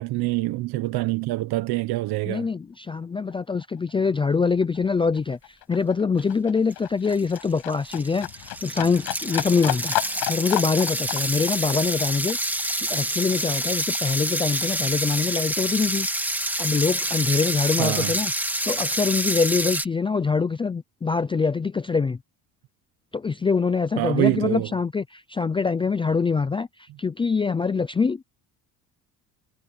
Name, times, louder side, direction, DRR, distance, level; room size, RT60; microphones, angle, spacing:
voice 1, 0.0-2.5 17.8-18.1 24.0-24.7, right 18 dB, 75° right, 1.1 m, -25 dB
voice 2, 2.3-5.4 5.7-12.4 12.8-16.1 16.6-22.2 23.1-28.3, left 5 dB, 15° left, 0.4 m, -24 dB
Livestock farm animals working animals, 2.9-3.0 3.3-14.3 14.6-15.6 16.0-16.1, left 18 dB, 85° left, 6.7 m, -33 dB
sound 1, 6.7-6.8 7.1-19.9, right 1 dB, 5° right, 1.9 m, -27 dB
cardioid pair, 160°, 38 cm